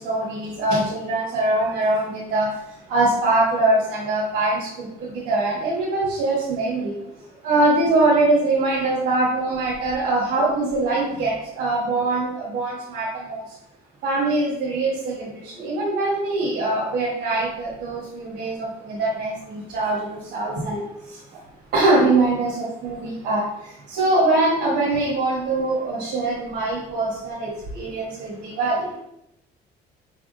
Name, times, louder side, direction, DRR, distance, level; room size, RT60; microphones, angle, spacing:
voice 1, 0.0-2.5 2.9-6.9 7.4-13.4 14.0-20.8 21.1-21.2 21.7-23.4 23.9-29.0, right 2 dB, 80° right, -6 dB, 1.2 m, -23 dB
5.5 x 3.5 x 2.6 m, 0.81 s
cardioid pair, 110°, 17 cm